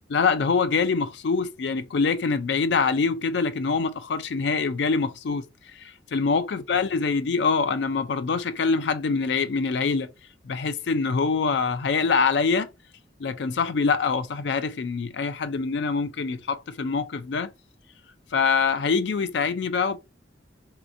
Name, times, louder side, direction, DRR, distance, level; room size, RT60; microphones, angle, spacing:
voice 1, 0.1-5.4 5.8-10.1 10.4-12.7 13.2-17.5 18.3-20.0, left 5 dB, 65° left, 0.4 m, -24 dB
3.1 x 2.9 x 2.5 m
head